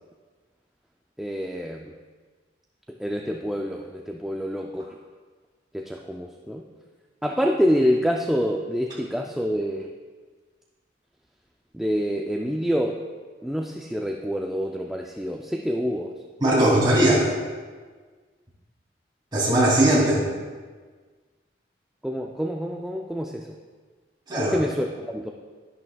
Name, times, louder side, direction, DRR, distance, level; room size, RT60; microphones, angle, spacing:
voice 1, 1.2-1.9 2.9-5.0 5.7-6.7 7.2-9.9 11.7-13.0 13.4-16.1 16.5-16.8 22.0-23.6 24.4-25.3, equal, ahead, 1 dB, 0.3 m, -27 dB
voice 2, 16.4-17.3 19.3-20.2 24.3-24.6, right 1 dB, 25° right, -5 dB, 2.5 m, -19 dB
11.0 x 10.5 x 2.3 m, 1.5 s
head